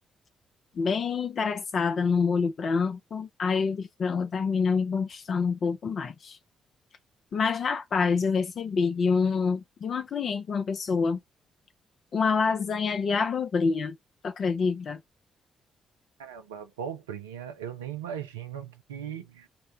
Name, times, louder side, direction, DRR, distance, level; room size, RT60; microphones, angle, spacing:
voice 1, 0.8-6.4 7.3-11.2 12.1-13.9 14.2-15.0, left 5 dB, 50° left, 0.5 m, -27 dB
voice 2, 16.2-19.5, right 9 dB, 80° right, 0.4 m, -38 dB
3.9 x 2.2 x 3.7 m
figure-of-eight pair, 40°, 0 cm